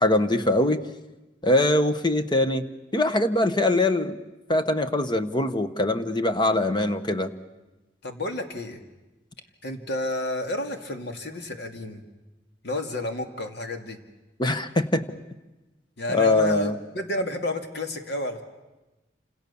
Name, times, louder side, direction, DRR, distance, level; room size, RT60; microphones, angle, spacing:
voice 1, 0.0-0.8 1.4-2.7 2.9-4.2 4.5-7.3 14.4-15.0 16.1-16.7, left 2 dB, 25° left, 10 dB, 1.2 m, -22 dB
voice 2, 8.0-8.8 9.6-12.0 12.6-14.0 16.0-18.4, left 1 dB, 60° left, 5 dB, 2.6 m, -30 dB
28.5 x 27.5 x 7.1 m, 1.1 s
head